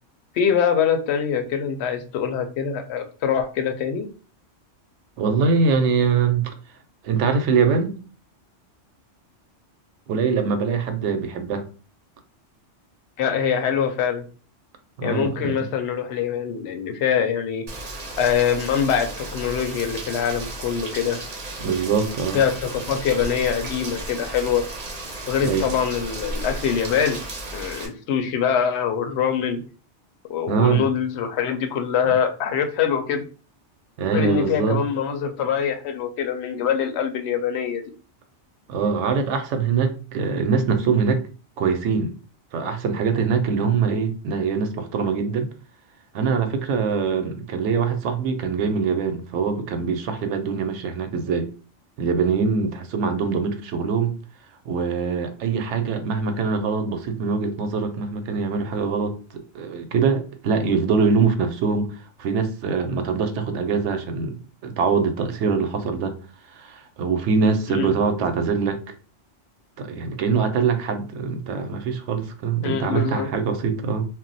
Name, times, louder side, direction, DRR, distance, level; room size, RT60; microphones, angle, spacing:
voice 1, 0.3-4.1 13.2-14.2 15.0-17.7 18.2-21.2 22.3-24.6 25.3-27.2 27.5-29.6 30.3-33.2 34.1-37.8 67.7-67.9 72.6-73.3, left 7 dB, 70° left, 0.8 m, -24 dB
voice 2, 5.2-6.5 7.0-8.0 10.1-11.7 15.0-15.7 21.6-22.4 25.4-25.7 30.5-30.8 34.0-34.8 38.7-41.2 41.6-42.1 42.5-45.5 46.1-51.5 52.0-54.1 54.7-59.2 59.5-61.9 62.2-64.4 64.6-66.1 66.6-68.8 69.8-74.1, right 5 dB, 75° right, 0.9 m, -23 dB
Rain, 17.7-27.9, right 2 dB, 40° right, 0.6 m, -34 dB
2.3 x 2.1 x 3.8 m
omnidirectional pair, 1.2 m